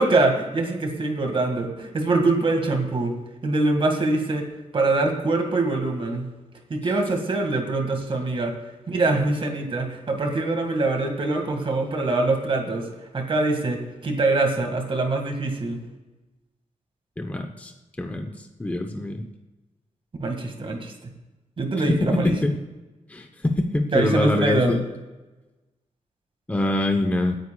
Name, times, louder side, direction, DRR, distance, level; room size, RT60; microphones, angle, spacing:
voice 1, 0.0-3.1 3.4-4.4 4.7-6.3 6.7-8.5 8.9-12.9 13.1-15.8 20.2-20.9 21.6-22.3 23.9-24.8, right 2 dB, 45° right, 3 dB, 1.8 m, -23 dB
voice 2, 17.2-17.7 18.0-19.3 21.9-22.5 23.1-24.8 26.5-27.4, left 1 dB, 10° left, 3 dB, 0.8 m, -24 dB
26.0 x 9.6 x 2.3 m, 1.1 s
wide cardioid pair, 180°, 13 cm